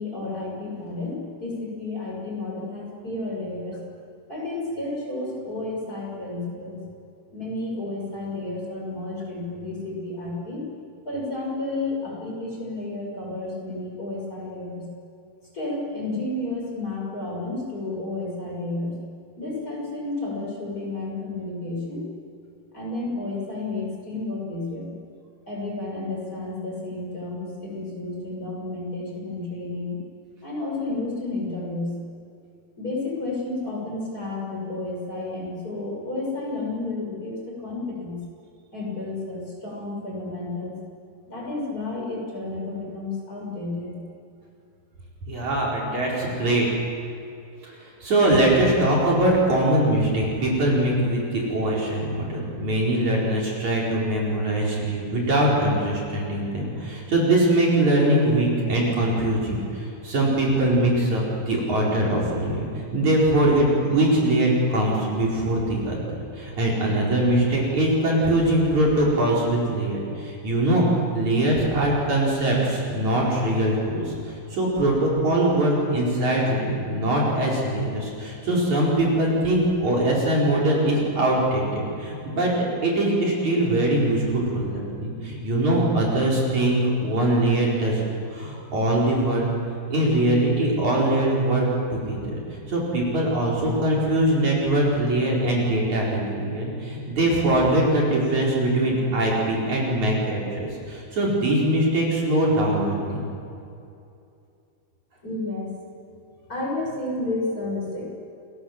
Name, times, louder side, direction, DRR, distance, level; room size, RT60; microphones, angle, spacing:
voice 1, 0.0-3.8 4.3-6.8 7.3-10.7 11.0-14.9 15.5-19.0 19.4-22.0 22.7-24.9 25.5-30.0 30.4-31.9 32.8-38.2 38.7-40.7 41.3-44.0 105.2-105.7 106.5-108.1, left 2 dB, 20° left, -3 dB, 6.4 m, -31 dB
voice 2, 45.3-46.6 48.0-66.0 66.4-70.9 71.1-82.5 82.8-88.0 88.3-89.5 89.9-92.4 92.7-103.3, right 1 dB, 50° right, -4 dB, 6.1 m, -22 dB
30.0 x 21.5 x 7.5 m, 2.6 s
omnidirectional pair, 4.4 m